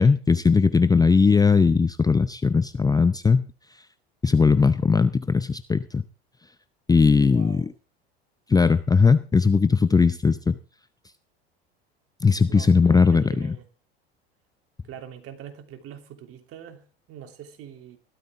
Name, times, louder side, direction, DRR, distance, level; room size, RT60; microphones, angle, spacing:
voice 1, 0.0-3.5 4.2-6.0 6.9-7.7 8.5-10.6 12.2-13.6, left 5 dB, 10° left, 0.6 m, -19 dB
voice 2, 7.2-7.7 12.5-13.7 14.9-18.0, right 9 dB, 45° right, 3.3 m, -43 dB
16.0 x 13.0 x 3.7 m
hypercardioid pair, 80°, 31 cm